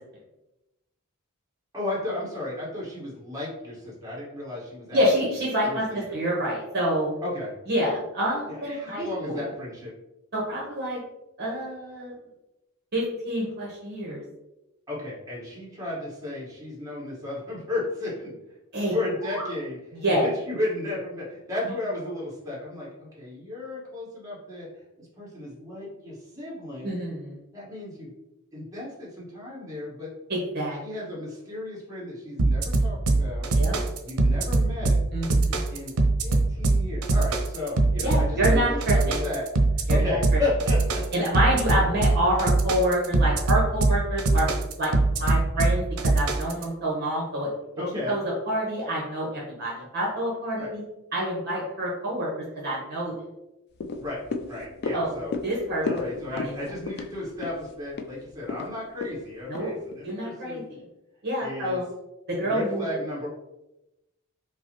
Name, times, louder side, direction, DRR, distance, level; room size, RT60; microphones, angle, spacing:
voice 1, 1.7-5.0 5.7-5.8 7.2-7.5 8.5-9.9 14.9-18.4 18.9-19.8 20.2-24.7 25.0-26.9 27.5-28.1 28.5-30.1 30.8-33.5 34.0-35.0 35.7-35.9 36.2-39.5 39.7-41.0 47.8-48.2 50.6-50.7 54.0-54.2 54.5-55.3 55.8-60.6 61.4-61.8 62.4-63.3, left 2 dB, 15° right, -7 dB, 1.4 m, -34 dB
voice 2, 4.9-7.1 7.7-9.5 10.3-11.0 11.4-12.1 12.9-14.2 18.7-18.9 19.9-20.3 21.6-21.7 26.8-27.4 30.3-30.8 33.5-33.8 35.1-35.6 38.0-39.2 39.9-40.0 40.3-40.4 41.1-47.5 48.1-50.8 51.1-53.1 54.9-55.1 55.4-55.8 56.3-56.6 59.5-59.7 60.0-60.6 61.2-61.9 62.3-62.9, right 1 dB, 50° right, -4 dB, 0.9 m, -27 dB
sound 1, 18.9-19.6, right 1 dB, ahead, 1.4 m, -39 dB
sound 2, 32.4-46.6, right 2 dB, 90° right, 0.5 m, -22 dB
sound 3, 53.8-60.2 60.6-60.7, left 3 dB, 50° left, 0.3 m, -35 dB
5.0 x 2.0 x 2.9 m, 0.94 s
head